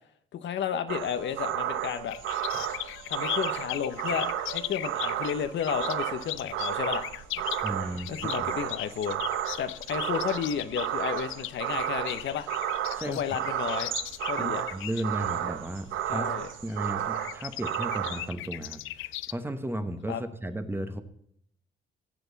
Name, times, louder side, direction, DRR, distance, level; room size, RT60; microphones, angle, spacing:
voice 1, 0.3-2.2 3.1-7.1 8.1-9.2 9.6-12.5 13.0-13.9 14.3-14.6 16.1-16.5 20.1-20.2, left 8 dB, 65° left, 10 dB, 1.0 m, -32 dB
sound 1, 0.9-18.3, right 11 dB, 80° right, 0.8 m, -33 dB
sound 2, 2.1-19.3, left 16 dB, 85° left, 0.4 m, -39 dB
voice 2, 7.6-8.1 8.4-8.5 13.0-13.2 14.4-16.3 16.6-21.0, right 1 dB, 10° right, 8 dB, 1.2 m, -34 dB
15.0 x 8.0 x 4.0 m, 0.70 s
cardioid pair, 90°, 20 cm